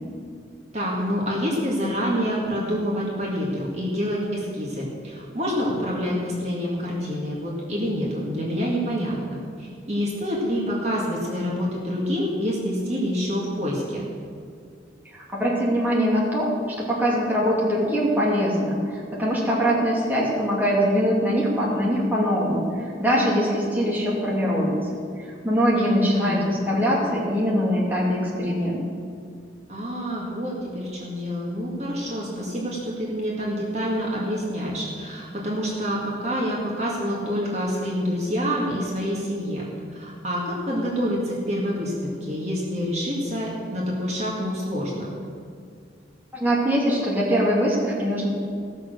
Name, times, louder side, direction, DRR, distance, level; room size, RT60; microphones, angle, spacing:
voice 1, 0.7-14.0 25.7-26.4 29.7-45.1, equal, 35° right, -4 dB, 2.1 m, -27 dB
voice 2, 15.1-24.8 25.4-28.8 46.3-48.3, equal, 10° right, -5 dB, 2.5 m, -22 dB
17.0 x 6.5 x 6.6 m, 2.2 s
head